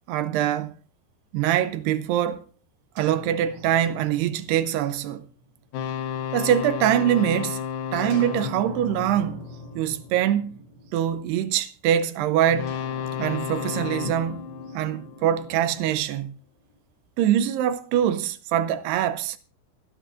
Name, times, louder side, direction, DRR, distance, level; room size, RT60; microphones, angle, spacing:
voice 1, 0.1-0.7 1.3-2.4 3.0-5.3 6.3-7.6 7.9-9.4 9.8-10.6 10.9-12.8 13.2-14.5 14.7-16.4 17.2-19.4, right 11 dB, 80° right, 2.6 m, -24 dB
sound 1, 3.0-6.8 8.1-11.7 12.7-16.8, left 1 dB, 45° right, 6.2 m, -45 dB
sound 2, 5.7-10.1 12.5-15.8, left 8 dB, 75° left, 2.2 m, -33 dB
25.0 x 10.0 x 2.5 m
omnidirectional pair, 5.2 m